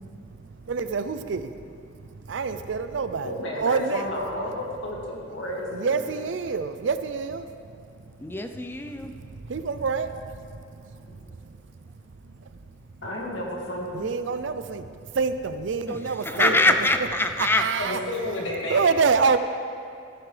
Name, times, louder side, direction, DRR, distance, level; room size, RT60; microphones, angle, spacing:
voice 1, 0.2-4.1 5.7-7.5 8.2-8.3 9.0-11.6 12.2-12.6 13.9-16.5 17.4-18.0 18.7-19.4, right 5 dB, 75° right, 10 dB, 0.5 m, -27 dB
voice 2, 3.2-6.0 10.9-11.2 13.0-14.1 16.3-16.8 17.8-18.9, left 1 dB, 85° left, -3 dB, 2.2 m, -32 dB
voice 3, 8.2-9.1 15.9-17.7, left 2 dB, 10° left, 6 dB, 0.5 m, -24 dB
14.0 x 10.5 x 3.4 m, 2.3 s
head